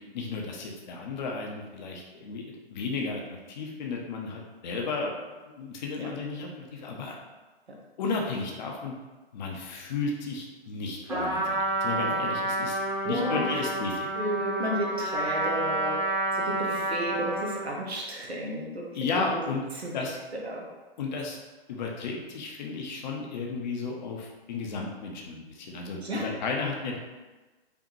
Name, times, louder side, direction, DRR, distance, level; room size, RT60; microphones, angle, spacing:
voice 1, 0.1-3.2 3.5-7.2 8.0-8.9 9.3-12.8 13.0-14.1 18.9-19.6 19.9-20.2 21.0-21.4 21.7-27.0, left 4 dB, 45° left, 0 dB, 0.7 m, -33 dB
Trumpet, 11.1-17.7, right 2 dB, 10° right, 0.9 m, -29 dB
voice 2, 13.0-13.4 14.1-16.0 16.3-18.9 19.3-19.4 19.8-19.9 20.4-20.6 26.0-26.2, right 1 dB, 90° right, -2 dB, 1.2 m, -32 dB
5.0 x 2.4 x 3.1 m, 1.2 s
figure-of-eight pair, 130°, 31 cm